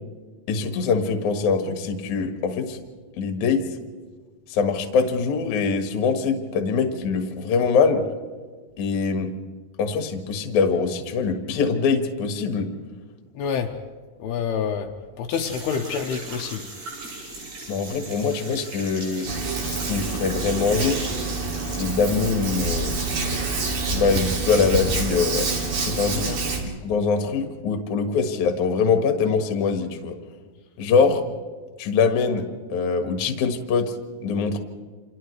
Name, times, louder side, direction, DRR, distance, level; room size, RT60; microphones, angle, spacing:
voice 1, 0.5-2.8 3.2-3.6 4.5-8.0 8.8-9.3 9.8-12.7 17.7-19.3 19.7-21.0 21.7-22.9 23.9-26.3 26.8-30.1 30.8-31.2 31.8-32.4 32.7-33.9 34.2-34.6, left 5 dB, 55° left, 5 dB, 2.5 m, -23 dB
voice 2, 13.4-13.7 14.2-14.9 15.2-16.6 26.3-26.4, left 7 dB, 80° left, 2 dB, 2.8 m, -27 dB
sound 1, 15.3-22.8 23.1-24.0, right 2 dB, 75° right, 8.8 m, -39 dB
Hands, 19.3-26.6, right 3 dB, 50° right, 3.7 m, -27 dB
29.5 x 27.5 x 3.3 m, 1.5 s
omnidirectional pair, 4.8 m